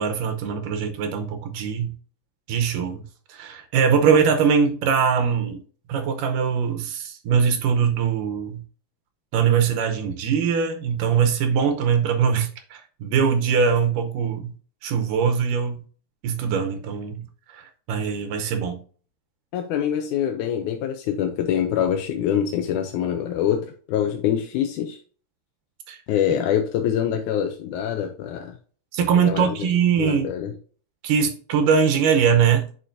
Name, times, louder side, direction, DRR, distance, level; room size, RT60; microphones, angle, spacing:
voice 1, 0.0-2.0 2.5-3.0 3.3-5.6 5.9-8.6 9.3-14.5 14.8-15.8 16.2-17.3 17.5-18.8 25.9-26.0 28.9-30.3 31.0-32.7, right 6 dB, 80° right, 2.4 m, -22 dB
voice 2, 19.5-25.0 26.1-28.6 29.2-29.5 30.0-30.5, left 9 dB, 75° left, 2.0 m, -25 dB
10.0 x 4.8 x 2.6 m
omnidirectional pair, 3.9 m